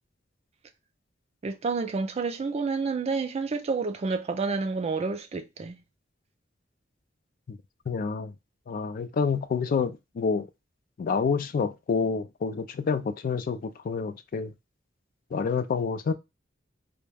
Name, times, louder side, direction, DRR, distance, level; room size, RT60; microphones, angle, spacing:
voice 1, 1.4-5.8, right 4 dB, 35° right, 0.3 m, -29 dB
voice 2, 7.9-8.3 8.7-10.5 11.0-14.5 15.3-16.1, left 5 dB, 50° left, 0.3 m, -28 dB
2.3 x 2.1 x 3.2 m
head